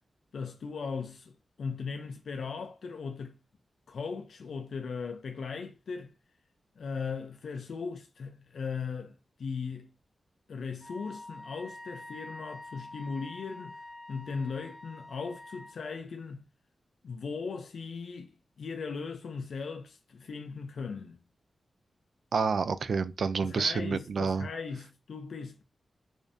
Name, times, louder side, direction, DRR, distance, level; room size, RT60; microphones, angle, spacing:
voice 1, 0.3-1.3 1.6-3.4 3.9-6.1 6.8-9.9 10.5-13.8 14.1-16.4 17.0-21.2 23.4-25.6, left 5 dB, 80° left, 0.4 m, -38 dB
Wind instrument woodwind instrument, 10.8-15.8, left 1 dB, 15° right, 0.7 m, -46 dB
voice 2, 22.3-24.5, right 5 dB, 70° right, 0.3 m, -29 dB
4.9 x 2.6 x 2.5 m
wide cardioid pair, 145°, 0 cm